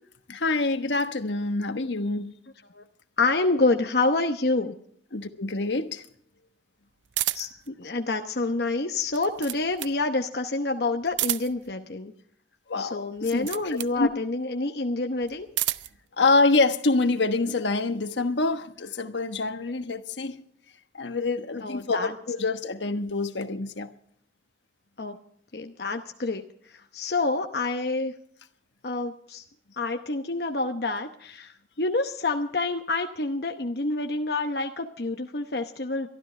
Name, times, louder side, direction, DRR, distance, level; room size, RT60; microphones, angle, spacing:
voice 1, 0.3-2.3 5.1-6.0 12.7-14.1 16.2-20.4 20.9-23.9, left 3 dB, 80° left, 8 dB, 1.2 m, -26 dB
voice 2, 3.2-4.7 7.3-12.1 12.8-15.5 21.6-22.1 25.0-25.2 25.5-28.1 28.8-29.4 29.8-36.1, left 3 dB, 60° left, 4 dB, 0.9 m, -28 dB
sound 1, 7.1-7.7 9.0-10.0 11.1-11.7 13.2-14.0 15.2-16.0, right 15 dB, 85° right, 0.5 m, -30 dB
23.0 x 13.0 x 3.3 m, 0.62 s
head